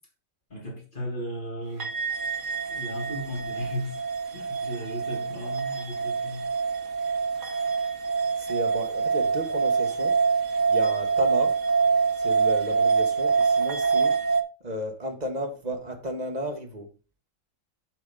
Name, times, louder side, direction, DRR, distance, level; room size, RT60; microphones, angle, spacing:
voice 1, 0.5-1.9 2.7-4.0 4.3-6.5, equal, 40° left, 3.4 m, -35 dB
sound 1, 1.8-14.4, right 5 dB, 65° right, 1.4 m, -25 dB
voice 2, 8.4-10.2 10.7-11.6 12.2-14.2 14.6-16.9, equal, 30° right, 1.5 m, -33 dB
7.5 x 6.2 x 3.8 m
omnidirectional pair, 1.4 m